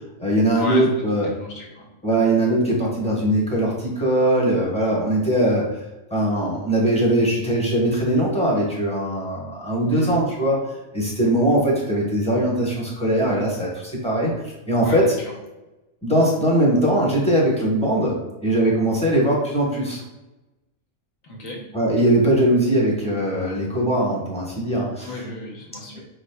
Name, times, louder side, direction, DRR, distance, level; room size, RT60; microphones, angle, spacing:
voice 1, 0.2-1.3 2.0-5.6 6.1-10.6 10.9-14.3 14.7-15.1 16.0-20.0 21.7-25.1, right 1 dB, 5° left, -4 dB, 0.9 m, -20 dB
voice 2, 1.4-1.9 9.9-10.2 14.8-15.3 21.2-21.6 25.0-26.0, left 1 dB, 70° left, -1 dB, 1.3 m, -34 dB
4.9 x 3.4 x 2.2 m, 1.0 s
omnidirectional pair, 1.5 m